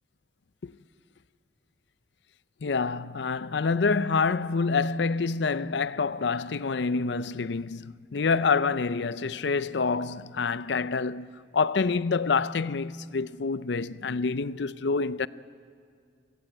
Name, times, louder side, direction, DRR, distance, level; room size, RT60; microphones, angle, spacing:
voice 1, 2.6-11.3 11.5-15.3, left 4 dB, 80° left, 0.5 m, -27 dB
28.5 x 17.0 x 8.9 m
head